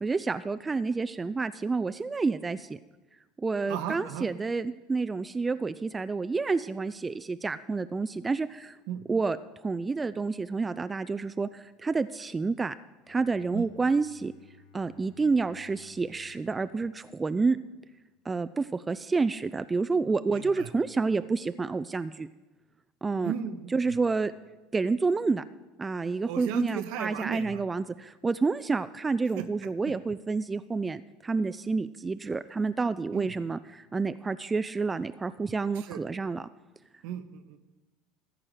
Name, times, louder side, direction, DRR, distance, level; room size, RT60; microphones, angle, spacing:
voice 1, 0.0-2.8 3.4-8.8 9.1-12.7 13.1-14.3 14.7-17.6 18.3-22.3 23.0-23.3 23.7-24.3 24.7-25.4 25.8-36.5, right 4 dB, 20° right, 12 dB, 0.4 m, -29 dB
voice 2, 3.7-4.3 8.9-9.0 13.5-13.7 20.3-20.7 23.2-24.0 26.3-27.6 29.3-29.5 33.1-33.3 35.7-36.0 37.0-37.6, right 9 dB, 70° right, 9 dB, 1.0 m, -36 dB
Bowed string instrument, 13.0-18.0, left 9 dB, 80° left, 1.7 m, -59 dB
14.0 x 4.9 x 9.2 m, 1.1 s
hypercardioid pair, 80°, 0 cm